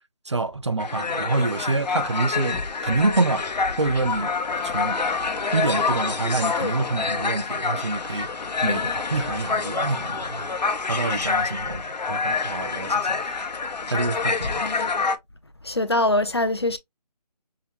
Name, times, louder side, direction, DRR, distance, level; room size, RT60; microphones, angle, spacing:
voice 1, 0.3-3.5 3.8-4.3 4.6-5.0 5.5-8.3 8.6-10.5 10.9-13.5 13.9-14.7, right 3 dB, 45° right, 0.5 m, -27 dB
sound 1, 0.8-15.2, left 4 dB, 85° left, 0.8 m, -27 dB
voice 2, 8.6-9.0 14.6-15.1 15.6-16.8, left 1 dB, 40° left, 0.4 m, -24 dB
5.6 x 2.1 x 3.0 m
figure-of-eight pair, 170°, 21 cm